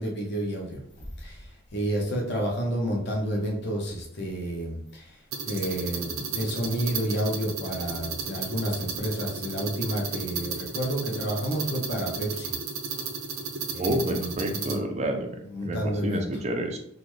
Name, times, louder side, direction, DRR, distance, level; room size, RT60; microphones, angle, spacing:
voice 1, 0.0-5.2 5.5-12.5 13.7-14.9 15.5-16.3, equal, 55° left, 0 dB, 0.8 m, -30 dB
sound 1, 5.3-14.8, right 5 dB, 70° right, 0.6 m, -34 dB
voice 2, 13.8-15.3 15.6-16.8, right 1 dB, 30° right, 4 dB, 0.4 m, -29 dB
3.8 x 2.1 x 3.1 m, 0.71 s
head